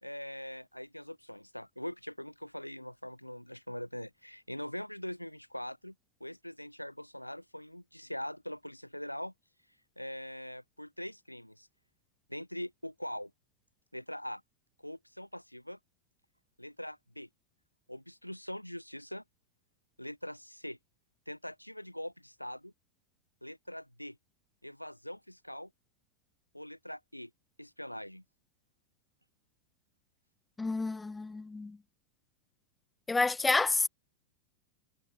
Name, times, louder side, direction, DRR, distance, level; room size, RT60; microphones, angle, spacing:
voice 1, 0.0-5.9 6.2-9.3 10.0-11.7 12.3-13.3 13.9-14.4 14.8-15.8 16.6-17.3 17.9-19.2 20.0-20.8 21.3-22.7 23.4-24.2 24.6-25.7 26.5-27.3 27.6-28.2, equal, 90° left, 2.4 m, -42 dB
voice 2, 30.6-31.8 33.1-33.9, left 3 dB, 10° left, 0.5 m, -29 dB
figure-of-eight pair, 90°, 0 cm